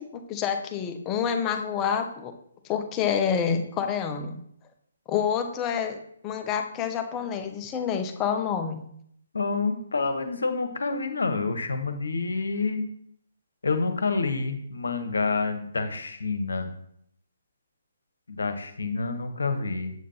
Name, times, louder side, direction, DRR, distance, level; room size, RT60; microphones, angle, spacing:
voice 1, 0.0-2.3 2.7-4.4 5.1-8.8, left 7 dB, 20° left, 6 dB, 0.8 m, -28 dB
voice 2, 9.3-12.8 13.6-16.7 18.3-19.9, left 4 dB, 65° left, 8 dB, 1.1 m, -28 dB
7.9 x 7.3 x 2.9 m, 0.68 s
figure-of-eight pair, 135°, 0 cm